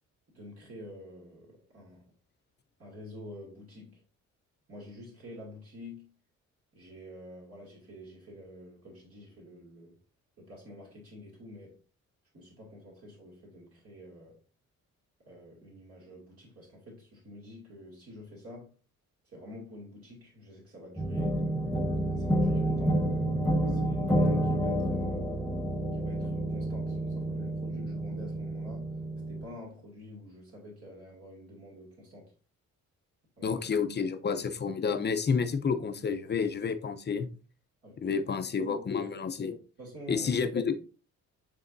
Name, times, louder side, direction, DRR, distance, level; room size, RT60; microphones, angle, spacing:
voice 1, 0.3-2.1 2.8-4.0 4.7-6.1 6.7-10.0 10.4-11.8 12.3-14.4 15.2-18.7 19.2-21.4 22.1-23.0 23.6-25.2 25.9-28.9 29.3-32.3 33.4-33.7 37.8-38.2 38.6-38.8 39.8-40.3, left 1 dB, 50° right, 2.6 m, -48 dB
sound 1, 21.0-29.5, right 1 dB, ahead, 1.5 m, -29 dB
voice 2, 33.4-37.3 38.0-39.6 40.1-40.7, left 6 dB, 35° left, 0.8 m, -30 dB
10.0 x 3.4 x 2.7 m
cardioid pair, 90°, 30 cm